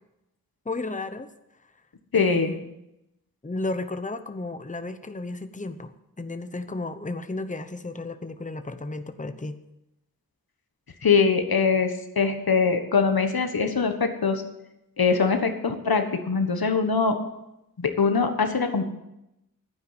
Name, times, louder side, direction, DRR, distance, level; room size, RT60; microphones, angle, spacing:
voice 1, 0.7-1.3 2.1-2.8 3.4-9.6, left 2 dB, 20° left, 9 dB, 0.9 m, -33 dB
voice 2, 2.1-2.5 11.0-14.4 15.0-17.2 17.8-18.8, left 5 dB, 90° left, 6 dB, 1.5 m, -22 dB
12.0 x 9.8 x 8.0 m, 0.87 s
wide cardioid pair, 75°, 35 cm